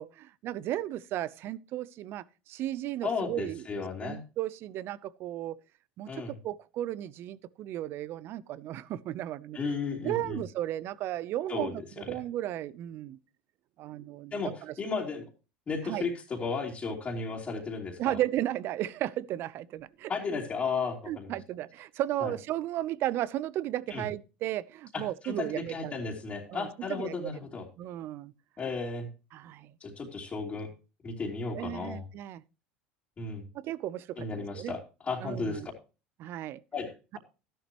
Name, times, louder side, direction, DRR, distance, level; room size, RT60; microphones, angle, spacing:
voice 1, 0.0-5.6 6.0-9.6 10.0-13.2 13.8-14.7 15.8-16.1 18.0-20.1 21.1-26.0 26.5-27.1 27.8-28.3 29.3-29.7 31.5-32.4 33.5-34.8 35.2-35.7 36.2-36.6, right 13 dB, 50° right, 0.7 m, -35 dB
voice 2, 3.0-4.2 6.1-6.3 9.5-10.4 11.5-11.7 12.1-12.2 14.3-14.5 14.8-15.3 15.7-18.2 20.1-21.3 22.2-22.3 23.9-24.1 24.9-27.6 28.6-29.1 29.8-30.7 31.0-32.0 33.2-33.4 34.2-35.6 36.7-37.2, left 4 dB, 30° left, 3.0 m, -34 dB
13.0 x 11.0 x 3.0 m
supercardioid pair, 105°, 5 cm